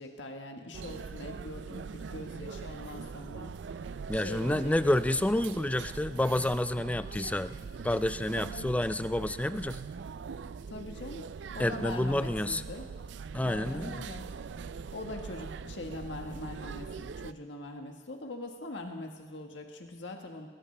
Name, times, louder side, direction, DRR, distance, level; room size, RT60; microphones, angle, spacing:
voice 1, 0.0-3.9 4.1-5.0 8.3-8.7 10.7-11.3 11.5-12.9 13.4-14.2 14.9-20.5, left 2 dB, 90° left, 3 dB, 1.5 m, -42 dB
sound 1, 0.7-17.3, right 5 dB, 75° right, 0.4 m, -42 dB
voice 2, 4.1-7.6 7.8-9.8 11.6-12.6 13.3-14.1, left 1 dB, 10° left, 13 dB, 0.3 m, -29 dB
20.0 x 19.5 x 3.3 m, 1.5 s
head